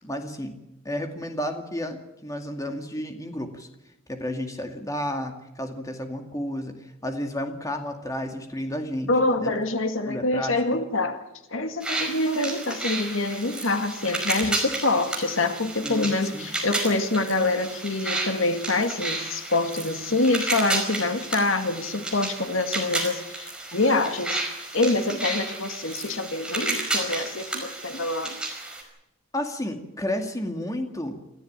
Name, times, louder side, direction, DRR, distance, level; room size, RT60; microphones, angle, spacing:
voice 1, 0.0-0.6 0.8-3.7 4.1-9.1 9.4-9.5 10.1-10.8 14.4-14.5 15.8-16.5 29.3-31.1, left 1 dB, 15° left, 4 dB, 2.3 m, -32 dB
voice 2, 9.1-11.2 11.5-24.4 24.7-28.4, left 2 dB, 75° left, 7 dB, 1.9 m, -25 dB
sound 1, 11.8-28.8, right 2 dB, 5° right, 5.1 m, -32 dB
27.5 x 14.0 x 8.9 m, 0.89 s
head